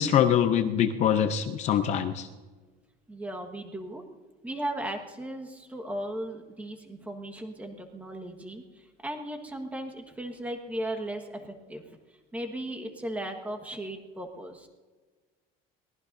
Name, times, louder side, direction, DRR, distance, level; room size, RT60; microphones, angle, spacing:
voice 1, 0.0-2.3, left 9 dB, 40° left, 8 dB, 0.7 m, -24 dB
voice 2, 3.1-4.0 4.4-8.6 9.0-12.0 12.3-14.7, right 1 dB, 10° right, 4 dB, 1.6 m, -36 dB
23.0 x 18.5 x 2.7 m, 1.4 s
cardioid pair, 170°, 18 cm